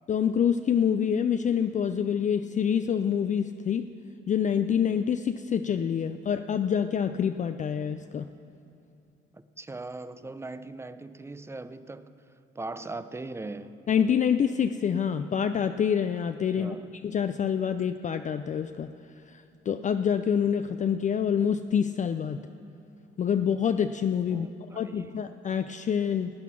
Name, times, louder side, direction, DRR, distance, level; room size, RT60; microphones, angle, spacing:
voice 1, 0.1-3.8 4.3-8.3 13.9-16.8 17.0-18.9 19.3-22.4 23.2-24.5 24.7-26.3, left 8 dB, 40° left, 0.4 m, -26 dB
voice 2, 9.3-12.2 12.6-13.8 16.6-16.9 24.3-25.1, right 2 dB, 15° right, 0.5 m, -40 dB
16.5 x 9.1 x 6.0 m
cardioid pair, 90°, 20 cm